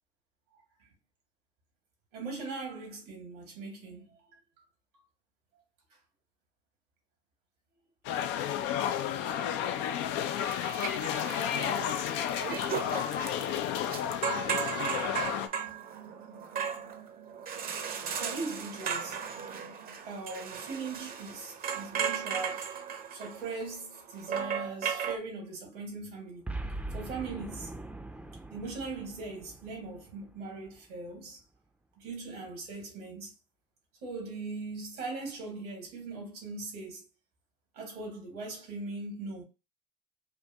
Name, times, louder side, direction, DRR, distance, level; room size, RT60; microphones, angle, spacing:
voice 1, 2.1-4.2 18.1-19.3 20.0-22.7 23.1-26.5 26.9-27.8 28.5-31.4 32.0-33.3 34.0-37.0 37.7-39.4, right 3 dB, 85° right, 1.8 m, -40 dB
sound 1, 8.0-15.5, left 10 dB, 70° left, 0.4 m, -32 dB
sound 2, 10.5-25.2, right 7 dB, 50° right, 0.7 m, -36 dB
Boom, 26.5-30.9, right 2 dB, 5° right, 0.5 m, -41 dB
3.4 x 2.6 x 2.8 m
hypercardioid pair, 70°, 19 cm